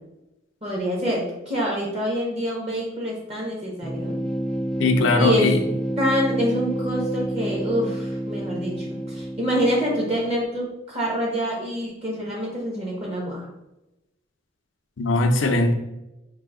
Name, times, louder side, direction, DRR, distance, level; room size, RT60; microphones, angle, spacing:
voice 1, 0.6-4.2 5.2-5.5 6.0-13.5, equal, 30° right, -3 dB, 1.0 m, -26 dB
sound 1, 3.8-10.5, right 1 dB, 5° left, 0.3 m, -29 dB
voice 2, 4.8-5.6 15.0-15.7, left 2 dB, 75° left, 6 dB, 0.6 m, -20 dB
4.8 x 2.7 x 3.7 m, 0.94 s
head